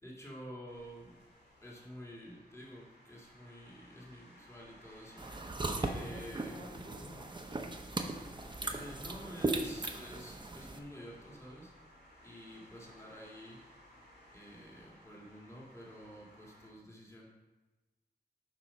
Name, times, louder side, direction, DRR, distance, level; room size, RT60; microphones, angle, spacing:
voice 1, 0.0-1.2 1.6-5.3 5.8-6.6 8.7-11.7 12.2-13.6 14.3-17.3, equal, 15° left, -4 dB, 2.0 m, -49 dB
sound 1, 0.7-16.7, equal, 80° left, 2.2 m, -60 dB
sound 2, 5.2-10.8, right 2 dB, 30° right, 0.7 m, -38 dB
voice 2, 5.8-7.8, left 1 dB, 55° left, -4 dB, 1.7 m, -51 dB
7.4 x 5.4 x 5.3 m, 1.2 s
wide cardioid pair, 100°, 17 cm